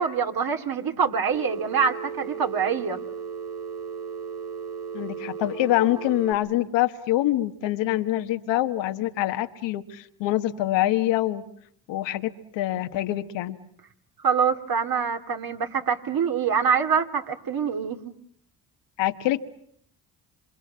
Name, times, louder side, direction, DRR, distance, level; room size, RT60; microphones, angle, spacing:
voice 1, 0.0-3.0 14.2-18.1, right 6 dB, 55° right, 6 dB, 3.0 m, -25 dB
Telephone, 1.3-6.3, right 7 dB, 85° right, 3.7 m, -35 dB
voice 2, 4.9-11.4 11.9-13.6 19.0-19.4, left 15 dB, 85° left, 8 dB, 1.5 m, -25 dB
27.5 x 26.5 x 7.5 m, 0.65 s
supercardioid pair, 60°, 43 cm